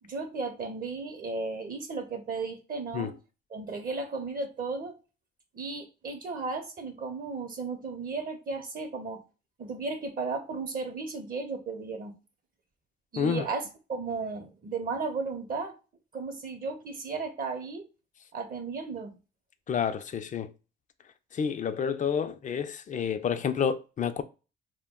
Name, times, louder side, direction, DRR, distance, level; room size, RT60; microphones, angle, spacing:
voice 1, 0.0-3.2 3.5-5.0 5.5-9.2 9.6-12.2 13.1-15.7 16.1-17.9 18.3-19.1, right 4 dB, 45° right, 0.6 m, -35 dB
voice 2, 19.7-20.5 21.3-24.2, left 7 dB, 40° left, 0.4 m, -29 dB
2.2 x 2.1 x 3.6 m
cardioid pair, 90°, 20 cm